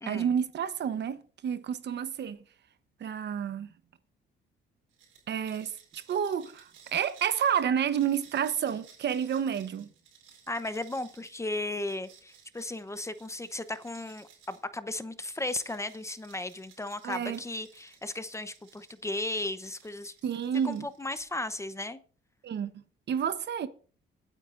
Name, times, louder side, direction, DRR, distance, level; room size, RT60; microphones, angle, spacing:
voice 1, 0.1-2.4 3.0-3.7 5.3-9.9 17.0-17.4 20.2-20.9 22.4-23.7, right 8 dB, 60° right, 1.0 m, -30 dB
sound 1, 4.9-14.7 15.2-19.1 19.6-21.4, right 7 dB, 85° right, 4.6 m, -58 dB
voice 2, 10.5-20.1 20.6-22.0, left 2 dB, 15° left, 0.8 m, -35 dB
24.5 x 9.1 x 2.6 m
cardioid pair, 90°, 20 cm